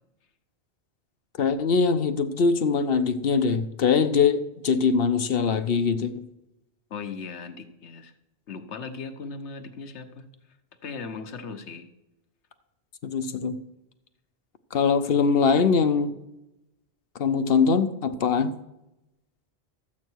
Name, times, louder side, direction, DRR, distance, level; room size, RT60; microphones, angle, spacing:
voice 1, 1.4-6.2 13.0-13.6 14.7-16.1 17.2-18.5, left 5 dB, 60° left, 0.9 m, -22 dB
voice 2, 6.9-8.1 8.5-10.2 10.8-11.9, left 4 dB, 75° left, 1.3 m, -38 dB
13.5 x 8.6 x 4.6 m
omnidirectional pair, 1.2 m